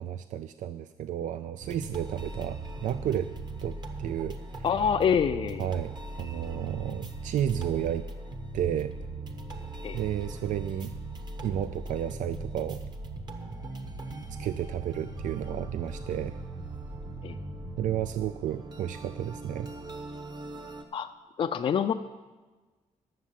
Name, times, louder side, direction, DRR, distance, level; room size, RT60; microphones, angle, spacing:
voice 1, 0.0-3.3 3.6-4.7 5.6-8.0 8.5-8.9 9.9-10.9 11.4-12.8 14.3-16.4 17.8-19.7, right 10 dB, 90° right, 12 dB, 0.4 m, -32 dB
sound 1, 1.6-20.8, right 2 dB, 35° right, 1.0 m, -39 dB
voice 2, 4.6-5.7 9.8-10.0 17.2-17.4 20.9-21.1 21.4-21.9, left 7 dB, 45° left, 6 dB, 0.4 m, -26 dB
11.5 x 7.2 x 7.4 m, 1.3 s
wide cardioid pair, 155°, 13 cm